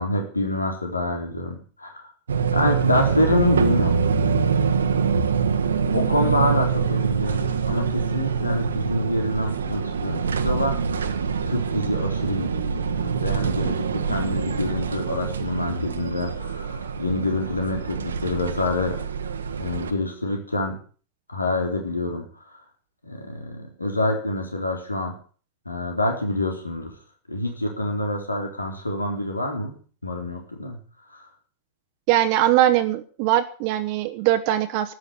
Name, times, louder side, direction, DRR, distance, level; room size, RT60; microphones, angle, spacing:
voice 1, 0.0-2.1 2.5-4.0 5.9-10.8 11.5-19.0 19.6-20.8 21.3-22.3 23.0-25.1 25.7-26.9 27.3-30.8 31.1-31.3, left 2 dB, 80° left, 3 dB, 3.7 m, -26 dB
sound 1, 2.3-19.9, right 6 dB, 70° right, 1.5 m, -25 dB
voice 2, 32.1-34.9, right 13 dB, 45° right, 7 dB, 1.2 m, -21 dB
13.5 x 10.0 x 8.8 m, 0.41 s
figure-of-eight pair, 90°, 0 cm